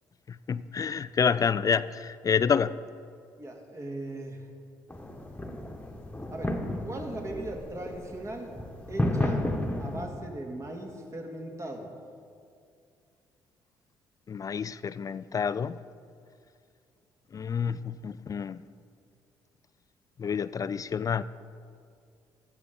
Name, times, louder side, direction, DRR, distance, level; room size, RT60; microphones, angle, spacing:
voice 1, 0.3-2.8 14.3-15.8 17.3-18.6 20.2-21.2, left 6 dB, 35° left, 0.4 m, -28 dB
voice 2, 3.4-4.5 6.3-6.5 6.8-8.5 8.9-9.4 9.8-11.9 17.7-17.9, right 1 dB, 30° right, 2.2 m, -38 dB
sound 1, 4.9-10.1, left 1 dB, 10° left, 1.5 m, -32 dB
15.0 x 6.9 x 5.3 m
hypercardioid pair, 55°, 10 cm